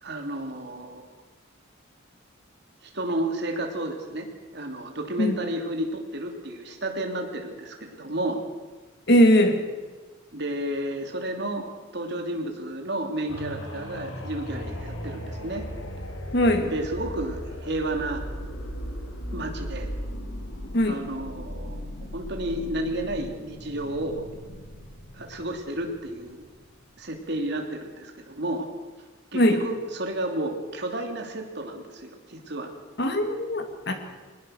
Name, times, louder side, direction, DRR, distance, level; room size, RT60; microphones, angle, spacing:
voice 1, 0.0-1.0 2.8-4.3 4.5-8.4 10.3-15.6 16.6-18.2 19.3-19.9 20.9-21.8 22.1-24.2 25.1-26.4 27.0-28.7 29.3-32.7, right 1 dB, 60° right, 3 dB, 2.9 m, -31 dB
voice 2, 9.1-9.6 16.3-16.7 20.7-21.0 29.3-29.6 33.0-33.9, equal, 55° left, 6 dB, 2.6 m, -20 dB
sound 1, 13.3-26.9 27.4-27.5, equal, 85° left, 3.2 m, -37 dB
21.5 x 20.0 x 6.5 m, 1.3 s
head